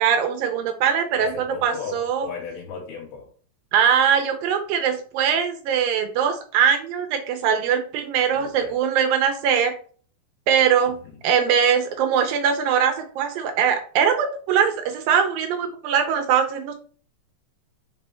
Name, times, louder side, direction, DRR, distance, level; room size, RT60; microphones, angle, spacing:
voice 1, 0.0-2.3 3.7-9.7 10.5-10.9 11.2-16.7, right 8 dB, 80° right, 2.1 m, -21 dB
voice 2, 1.1-3.3 8.3-8.8 10.9-11.0, left 6 dB, 85° left, 3.5 m, -36 dB
5.4 x 5.2 x 4.2 m
omnidirectional pair, 4.7 m